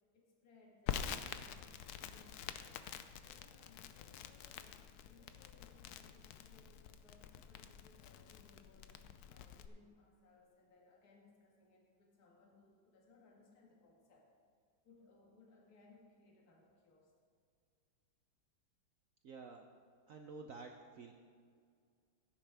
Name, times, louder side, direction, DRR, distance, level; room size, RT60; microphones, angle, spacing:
voice 1, 0.1-2.8 3.2-9.0 9.3-14.3 14.8-17.1, left 3 dB, 50° left, -2 dB, 2.2 m, -66 dB
Crackle, 0.9-9.7, left 9 dB, 75° left, 0.8 m, -47 dB
voice 2, 19.2-19.6 20.1-21.1, right 4 dB, 80° right, 3 dB, 0.7 m, -50 dB
16.0 x 10.0 x 3.5 m, 2.1 s
omnidirectional pair, 2.2 m